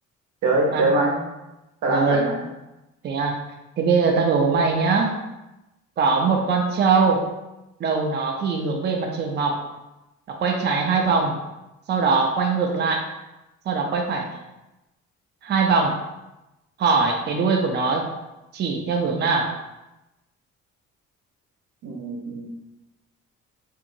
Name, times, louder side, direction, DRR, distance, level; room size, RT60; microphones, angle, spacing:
voice 1, 0.4-1.2 1.8-2.4 6.3-6.4 21.8-22.5, right 2 dB, 90° right, -1 dB, 0.7 m, -23 dB
voice 2, 1.9-2.2 3.0-3.4 3.8-5.2 6.0-7.2 7.8-9.6 10.3-11.4 11.9-13.1 13.7-14.3 15.4-16.0 16.8-18.1 18.5-19.5, right 4 dB, 35° right, 2 dB, 0.4 m, -21 dB
2.8 x 2.6 x 2.7 m, 0.98 s
cardioid pair, 90°, 30 cm